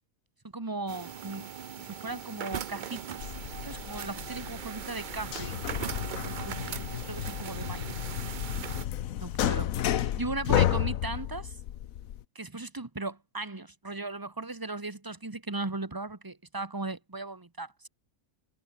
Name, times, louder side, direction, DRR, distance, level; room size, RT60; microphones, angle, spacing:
voice 1, 0.5-1.5 1.8-3.3 3.6-7.9 9.2-11.6 12.3-17.9, right 3 dB, 15° right, 1.3 m, -38 dB
sound 1, 0.9-8.8, right 8 dB, 50° right, 0.6 m, -39 dB
sound 2, 3.2-12.2, left 11 dB, 65° left, 1.2 m, -32 dB
omnidirectional pair, 1.6 m